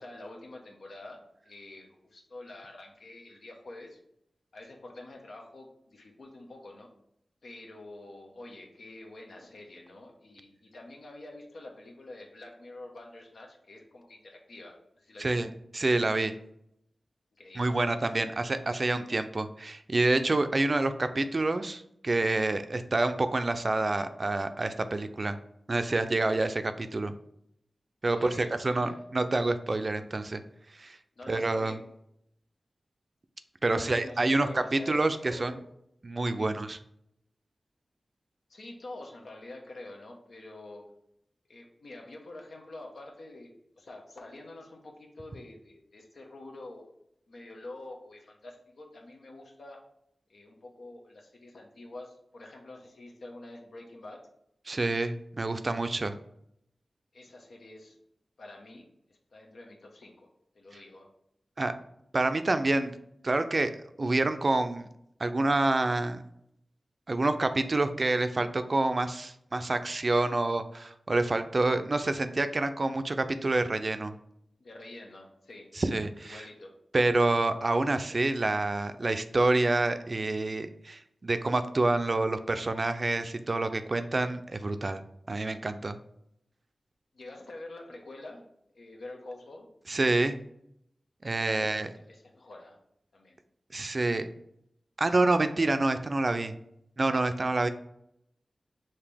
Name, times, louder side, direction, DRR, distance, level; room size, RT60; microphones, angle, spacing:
voice 1, 0.0-4.0 4.5-6.9 7.4-15.3 17.3-18.4 28.1-29.0 31.2-31.9 33.7-35.7 36.4-36.5 38.5-40.9 41.5-46.9 47.3-49.8 50.3-54.2 57.1-58.0 58.4-60.3 60.5-61.1 74.6-75.7 76.2-76.7 87.1-88.5 88.7-89.7 91.5-92.8 93.1-93.4, left 2 dB, 80° left, 1 dB, 0.8 m, -47 dB
voice 2, 15.2-16.4 17.6-25.4 25.7-27.1 28.0-30.4 30.8-31.0 31.3-31.8 33.6-35.5 36.0-36.8 54.7-56.1 61.6-61.7 62.1-62.9 63.2-63.7 64.0-64.9 65.2-66.2 67.1-74.1 75.8-76.4 76.9-85.0 85.3-86.0 89.9-90.4 91.2-91.9 93.7-94.3 95.0-96.6 97.0-97.7, right 2 dB, 45° right, 9 dB, 0.4 m, -27 dB
4.9 x 2.9 x 3.3 m, 0.76 s
cardioid pair, 55°, 0 cm